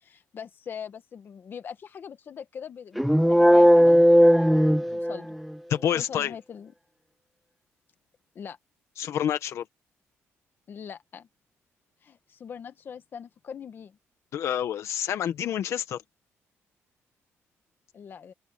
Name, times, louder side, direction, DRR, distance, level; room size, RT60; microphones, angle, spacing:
voice 1, 0.0-4.0 4.7-5.3 5.9-6.7 8.3-8.6 10.7-11.3 12.0-14.0 17.9-18.3, left 7 dB, 45° left, 1.4 m, -42 dB
sound 1, 3.0-5.5, equal, ahead, 0.4 m, -17 dB
voice 2, 5.7-6.3 9.0-9.6 14.3-16.0, left 9 dB, 65° left, 1.1 m, -28 dB
cardioid pair, 145°, 5 cm